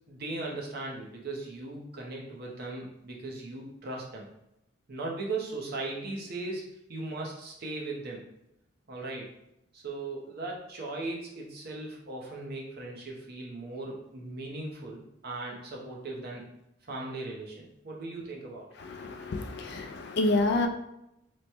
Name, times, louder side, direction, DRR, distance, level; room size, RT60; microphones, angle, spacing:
voice 1, 0.1-4.3 4.9-8.2 8.9-9.3 9.7-16.5 16.9-18.7, right 2 dB, 50° right, -2 dB, 0.7 m, -38 dB
voice 2, 18.8-20.7, left 2 dB, 55° left, 6 dB, 0.3 m, -28 dB
3.1 x 2.1 x 4.2 m, 0.84 s
head